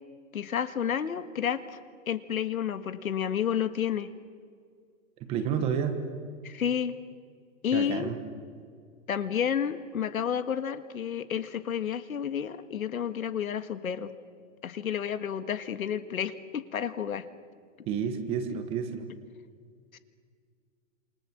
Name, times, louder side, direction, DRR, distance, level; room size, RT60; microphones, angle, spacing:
voice 1, 0.3-1.8 2.1-4.1 6.4-7.0 7.6-8.1 9.1-14.1 14.6-17.3 18.5-18.6 19.9-20.0, left 8 dB, 90° left, 11 dB, 1.9 m, -30 dB
voice 2, 5.2-6.0 7.7-8.2 17.9-19.1, right 7 dB, 15° right, 8 dB, 1.2 m, -30 dB
28.0 x 28.0 x 7.4 m, 2.1 s
hypercardioid pair, 170°, 41 cm